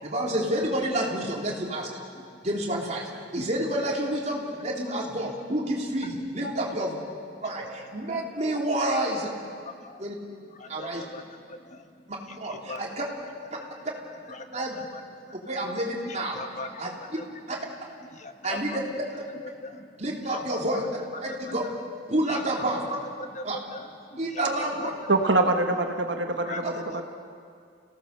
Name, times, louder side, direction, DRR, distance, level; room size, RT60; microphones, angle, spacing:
voice 1, 0.0-1.9 2.4-3.0 3.3-7.0 7.4-9.3 10.0-10.1 10.7-11.0 12.1-13.1 14.5-14.8 15.5-16.4 16.8-16.9 17.5-17.6 18.4-18.8 20.0-21.6 22.1-22.8 23.4-23.6 24.2-24.9, right 1 dB, 40° right, -2 dB, 3.7 m, -29 dB
voice 2, 9.7-10.0 10.5-11.9 12.3-12.8 13.6-13.7 14.3-15.6 16.1-17.2 17.5-17.6 18.1-18.8 19.6-20.0 20.3-20.8 21.3-21.6 22.3-22.6 23.2-23.9 24.3-25.1 26.4-26.6 26.9-27.0, left 3 dB, 40° left, 7 dB, 1.2 m, -40 dB
voice 3, 25.1-27.0, right 2 dB, 70° right, 4 dB, 1.7 m, -24 dB
30.0 x 17.5 x 6.8 m, 2.2 s
head